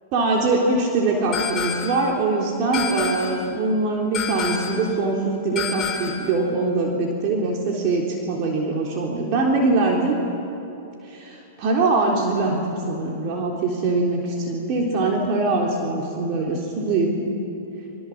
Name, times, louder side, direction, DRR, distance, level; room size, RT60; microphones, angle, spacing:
voice 1, 0.1-10.2 11.1-17.3, right 3 dB, 45° right, -1 dB, 3.7 m, -23 dB
sound 1, 1.3-2.1 2.7-3.5 4.1-4.9 5.6-6.3, left 7 dB, 25° left, 4.1 m, -28 dB
29.0 x 23.5 x 7.6 m, 2.9 s
hypercardioid pair, 110°, 0 cm